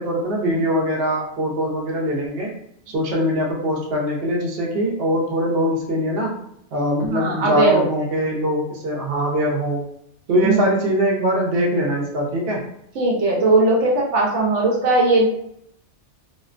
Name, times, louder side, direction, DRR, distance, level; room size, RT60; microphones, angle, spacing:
voice 1, 0.0-2.5 2.9-6.3 6.7-9.8 10.3-12.6, equal, 60° right, -2 dB, 0.8 m, -22 dB
voice 2, 7.1-7.8 10.4-10.6 12.9-15.3, right 2 dB, 80° right, -2 dB, 1.0 m, -18 dB
2.4 x 2.1 x 2.4 m, 0.72 s
omnidirectional pair, 1.2 m